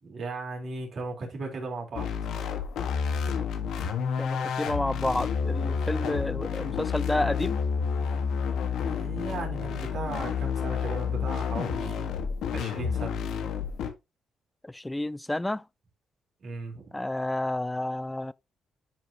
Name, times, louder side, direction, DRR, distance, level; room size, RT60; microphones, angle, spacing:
voice 1, 0.0-2.1 8.8-12.1 12.5-13.3 16.4-16.9, right 3 dB, 50° right, 3.7 m, -36 dB
sound 1, 1.9-13.9, left 6 dB, 80° left, 1.4 m, -30 dB
voice 2, 4.2-7.6 14.6-15.6 16.9-18.3, left 1 dB, 10° left, 0.4 m, -30 dB
10.0 x 4.8 x 2.9 m
cardioid pair, 90°, 0 cm